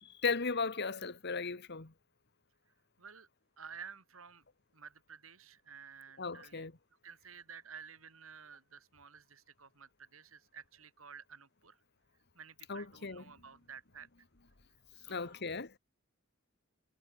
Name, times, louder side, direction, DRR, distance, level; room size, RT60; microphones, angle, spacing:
voice 1, 0.0-1.9 6.2-6.7 12.7-13.2 15.1-15.7, left 4 dB, 55° left, 1.6 m, -36 dB
voice 2, 3.0-3.3 3.6-4.4 4.7-6.7 7.0-11.8 12.3-14.1 14.9-15.5, right 6 dB, 85° right, 3.8 m, -52 dB
head